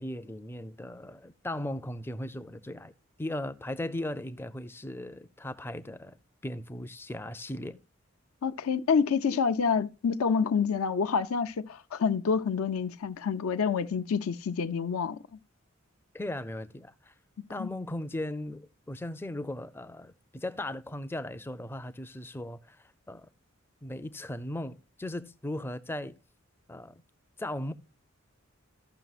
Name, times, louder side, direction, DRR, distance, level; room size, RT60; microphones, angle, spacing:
voice 1, 0.0-2.9 3.2-6.2 6.4-7.8 16.1-17.1 17.5-23.3 23.8-26.2 26.7-27.0 27.4-27.7, left 1 dB, 10° left, 0.4 m, -37 dB
voice 2, 8.4-15.2 17.6-17.7, left 6 dB, 85° left, 0.5 m, -28 dB
15.0 x 6.0 x 2.4 m
head